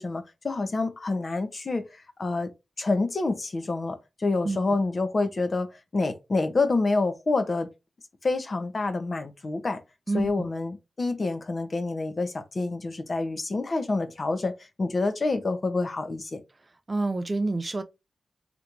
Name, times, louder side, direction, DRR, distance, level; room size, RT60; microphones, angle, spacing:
voice 1, 0.0-1.8 2.2-2.5 2.8-5.7 5.9-7.7 8.2-9.8 10.1-14.5 14.8-16.4, left 3 dB, 45° left, 0.7 m, -27 dB
voice 2, 10.1-10.5 16.9-17.8, right 2 dB, 30° right, 0.4 m, -27 dB
3.3 x 2.9 x 2.5 m
wide cardioid pair, 90°, 0 cm